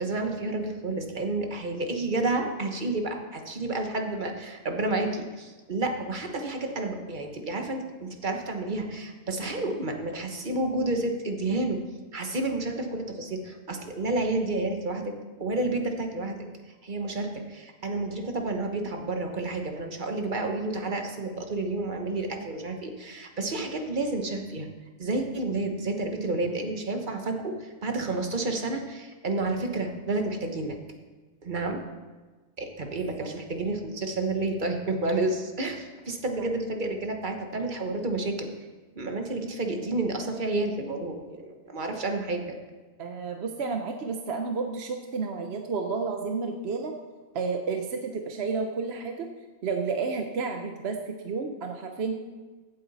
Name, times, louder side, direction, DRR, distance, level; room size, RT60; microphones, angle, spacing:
voice 1, 0.0-11.8 12.1-15.1 15.4-24.7 25.0-30.8 31.4-31.8 32.6-38.5 38.9-42.4, right 2 dB, 40° right, 4 dB, 1.3 m, -30 dB
voice 2, 43.0-46.9 47.3-49.3 49.6-52.2, right 4 dB, 55° right, 4 dB, 1.0 m, -31 dB
15.5 x 8.0 x 4.2 m, 1.3 s
omnidirectional pair, 1.4 m